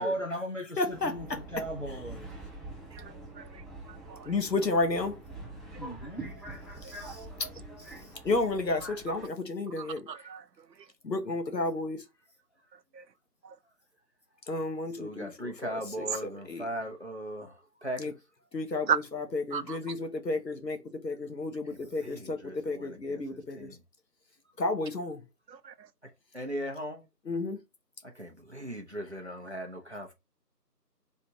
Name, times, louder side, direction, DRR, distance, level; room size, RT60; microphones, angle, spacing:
voice 1, 0.0-2.3 5.8-6.3, equal, 50° left, 0.5 m, -36 dB
voice 2, 0.8-1.1 4.3-5.2 8.2-10.1 11.0-12.0 14.5-16.7 18.0-18.1 18.5-23.7 24.6-25.2 27.3-27.6, left 2 dB, 80° left, 1.0 m, -32 dB
Subway metro underground, 0.9-9.3, right 2 dB, ahead, 0.6 m, -45 dB
voice 3, 2.9-3.4 3.9-4.3 9.8-10.4 12.9-13.0 13.4-13.5 18.9-19.0 19.5-19.8 25.5-25.7, right 7 dB, 80° right, 0.6 m, -34 dB
voice 4, 6.8-7.3 7.9-8.1 15.0-18.1 21.7-23.8 26.3-27.0 28.1-30.1, equal, 45° right, 0.7 m, -39 dB
3.3 x 2.9 x 2.7 m
figure-of-eight pair, 180°, 50 cm